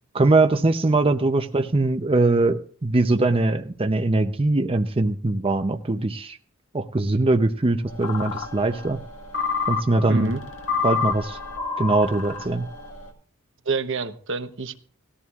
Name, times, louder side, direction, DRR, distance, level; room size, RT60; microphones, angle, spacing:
voice 1, 0.1-6.4 6.7-9.0 9.7-10.3 10.8-11.4 11.8-12.7, right 2 dB, 25° right, 6 dB, 0.7 m, -21 dB
sound 1, 7.9-13.1, left 5 dB, 75° left, 1.9 m, -29 dB
voice 2, 10.1-10.4 13.6-14.8, right 4 dB, 65° right, 9 dB, 1.0 m, -27 dB
18.5 x 14.0 x 2.4 m, 0.43 s
head